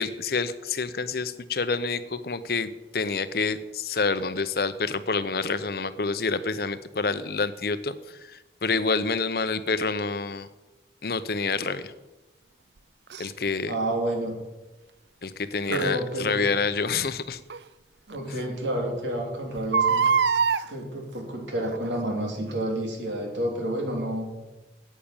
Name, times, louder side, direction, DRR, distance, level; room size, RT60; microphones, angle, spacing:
voice 1, 0.0-7.9 8.3-10.5 11.0-11.9 13.2-13.7 15.2-17.4, left 4 dB, 55° left, 13 dB, 0.7 m, -28 dB
Crying sobbing, 13.1-13.3 15.7-15.9 17.5-17.6 18.1-18.2 18.4-18.5 19.6-20.6 21.6-21.9 22.5-22.6, right 6 dB, 75° right, 0.5 m, -23 dB
voice 2, 13.7-14.3 15.7-16.5 16.9-17.0 18.1-20.2 20.7-24.3, right 1 dB, 90° right, 1 dB, 3.5 m, -29 dB
10.0 x 8.5 x 8.8 m, 1.1 s
head